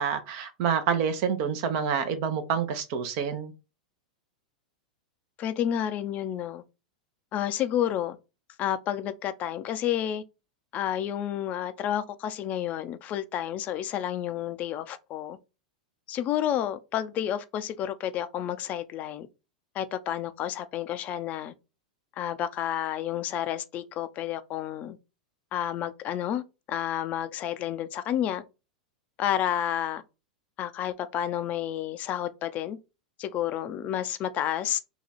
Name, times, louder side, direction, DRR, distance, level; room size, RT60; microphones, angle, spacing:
voice 1, 0.0-3.5, right 7 dB, 50° right, 0.7 m, -27 dB
voice 2, 5.4-6.6 7.3-8.2 8.6-10.2 10.7-15.4 16.1-19.3 19.7-21.5 22.2-25.0 25.5-26.4 26.7-28.4 29.2-30.0 30.6-32.8 33.2-34.8, left 11 dB, 40° left, 0.5 m, -30 dB
3.0 x 2.3 x 4.0 m
hypercardioid pair, 100°, 4 cm